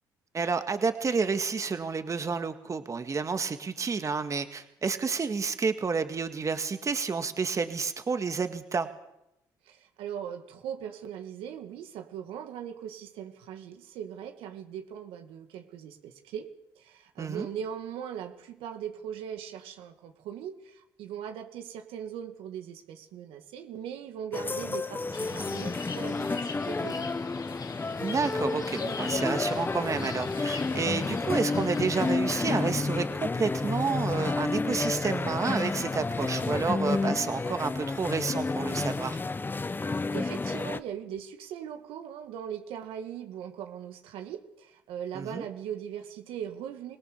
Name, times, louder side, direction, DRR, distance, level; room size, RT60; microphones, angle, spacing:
voice 1, 0.3-8.9 17.2-17.5 28.0-39.2 45.1-45.5, right 5 dB, 35° right, 8 dB, 1.9 m, -30 dB
voice 2, 9.7-27.2 39.8-47.0, right 9 dB, 80° right, 6 dB, 2.3 m, -40 dB
sound 1, 24.3-40.8, left 3 dB, 20° left, 1.0 m, -31 dB
sound 2, 25.1-32.2, left 5 dB, 45° left, 2.2 m, -39 dB
25.5 x 18.0 x 7.0 m, 0.85 s
supercardioid pair, 70°, 9 cm